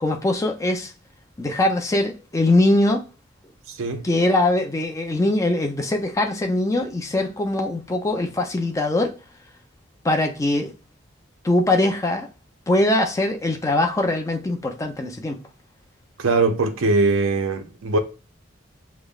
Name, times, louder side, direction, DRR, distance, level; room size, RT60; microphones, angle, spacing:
voice 1, 0.0-0.9 1.4-3.0 4.0-9.2 10.0-10.7 11.4-12.3 12.7-15.4, left 2 dB, 15° left, 0.4 m, -22 dB
voice 2, 3.7-4.1 16.2-18.0, right 3 dB, 85° right, 0.5 m, -21 dB
5.1 x 2.0 x 2.4 m
head